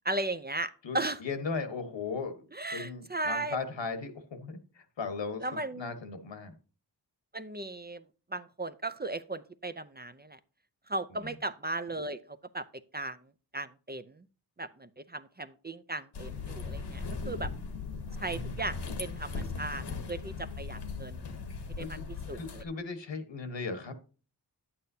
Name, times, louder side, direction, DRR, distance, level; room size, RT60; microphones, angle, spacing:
voice 1, 0.0-1.2 2.5-3.6 5.4-5.9 7.3-8.0 8.3-10.4 10.9-12.2 12.5-12.7 12.9-13.2 13.5-14.2 14.6-17.0 17.2-17.5 18.2-21.3 21.8-22.0 22.3-22.6, right 2 dB, 25° right, 11 dB, 0.5 m, -36 dB
voice 2, 0.8-2.4 2.7-6.5 11.2-11.3 18.3-18.6 21.8-22.0 22.3-23.9, left 4 dB, 80° left, 8 dB, 1.4 m, -37 dB
sound 1, 16.1-22.6, left 4 dB, 65° left, 1.1 m, -38 dB
10.5 x 8.7 x 2.7 m, 0.36 s
wide cardioid pair, 80°, 43 cm